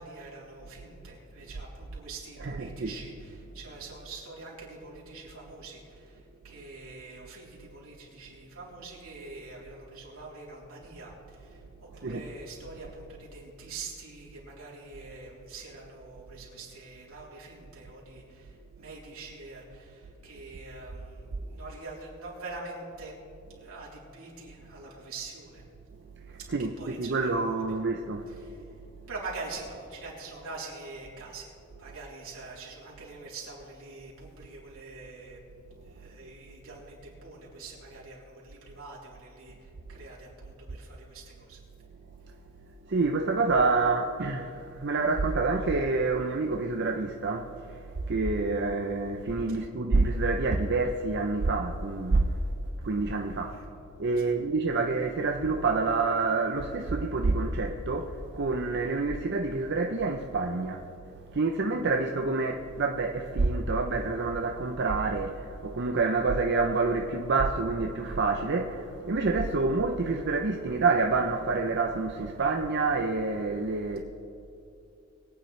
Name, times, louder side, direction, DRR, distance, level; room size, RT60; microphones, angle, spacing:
voice 1, 0.0-23.2 23.6-25.7 26.4-27.5 28.3-28.8 29.1-41.6 49.5-49.6 53.5-53.6 54.2-54.3 73.9-74.0, right 3 dB, 85° right, 3.4 m, -44 dB
voice 2, 2.4-2.9 12.0-12.2 26.3-26.7 27.0-28.3 42.9-52.4 52.8-53.6 54.0-60.9 61.3-74.0, right 3 dB, 55° right, 0.6 m, -27 dB
22.0 x 9.3 x 3.2 m
head